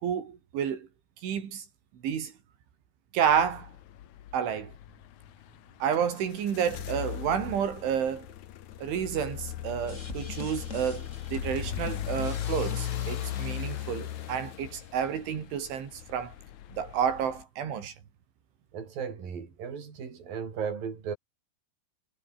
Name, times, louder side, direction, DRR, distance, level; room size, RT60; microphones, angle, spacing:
voice 1, 0.0-0.9 1.2-1.7 2.0-2.3 3.1-3.7 4.3-4.7 5.8-8.3 8.8-16.3 16.7-17.9, right 8 dB, 85° right, 5.9 m, -30 dB
sound 1, 3.2-17.4, left 12 dB, 85° left, 1.6 m, -38 dB
sound 2, 9.9-14.8, left 3 dB, 20° left, 2.8 m, -42 dB
voice 2, 18.7-21.2, right 6 dB, 50° right, 6.4 m, -36 dB
omnidirectional pair, 5.3 m